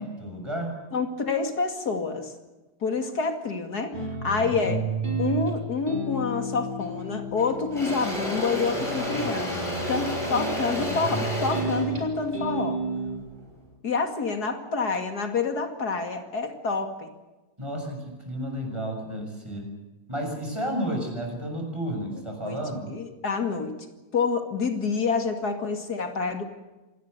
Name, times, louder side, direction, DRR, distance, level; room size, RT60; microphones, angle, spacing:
voice 1, 0.0-0.8 17.6-19.7 20.1-22.9, equal, 15° right, 3 dB, 6.9 m, -32 dB
voice 2, 0.9-2.3 2.8-4.8 5.2-9.6 9.9-12.8 13.8-17.1 22.4-22.6 22.9-23.7 24.1-26.4, left 4 dB, 75° left, 5 dB, 2.9 m, -28 dB
sound 1, 3.9-13.2, right 2 dB, 30° right, 5.0 m, -32 dB
Engine / Drill, 6.8-7.0 7.4-13.5, equal, 20° left, 6.0 m, -31 dB
26.0 x 19.5 x 6.8 m, 1.1 s
omnidirectional pair, 1.7 m